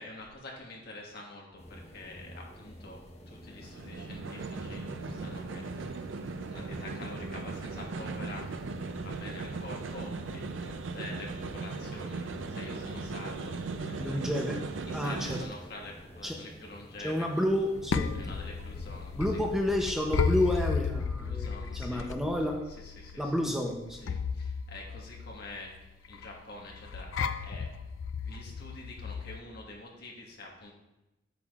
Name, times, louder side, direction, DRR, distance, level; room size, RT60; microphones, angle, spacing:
voice 1, 0.0-8.5 8.9-14.3 14.9-17.4 18.1-19.4 21.2-22.1 22.7-23.5 23.9-27.1 27.4-27.7 28.2-30.7, left 2 dB, 55° left, -1 dB, 1.4 m, -47 dB
sound 1, 1.6-19.8, equal, 35° left, 1.0 m, -50 dB
sound 2, 3.3-15.5, right 3 dB, 75° right, 0.5 m, -38 dB
voice 2, 14.0-14.6 14.9-15.4 16.2-16.4 17.0-18.3 19.2-22.6 23.2-24.0, left 1 dB, ahead, 0 dB, 0.6 m, -30 dB
sound 3, 17.5-29.4, left 5 dB, 90° left, 0.4 m, -34 dB
8.5 x 7.1 x 2.4 m, 0.95 s
head